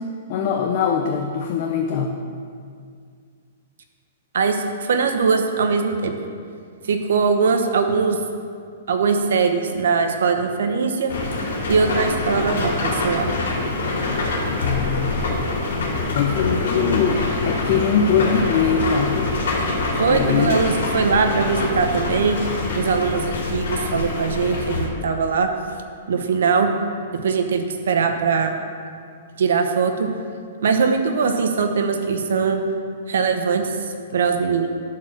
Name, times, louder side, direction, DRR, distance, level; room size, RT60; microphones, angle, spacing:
voice 1, 0.3-2.2 14.5-15.2 16.1-19.3 20.1-20.6, left 6 dB, 35° left, 2 dB, 0.5 m, -22 dB
voice 2, 4.3-6.1 6.8-8.2 8.9-11.2 11.7-13.3 20.0-22.4 22.8-25.5 26.1-26.7 27.1-28.6 29.4-30.1 30.6-32.6 33.1-33.7 34.1-34.7, right 5 dB, 70° right, 6 dB, 1.0 m, -21 dB
sound 1, 11.1-24.9, left 3 dB, 90° left, 2.3 m, -25 dB
11.5 x 4.6 x 6.1 m, 2.2 s
hypercardioid pair, 180°, 0 cm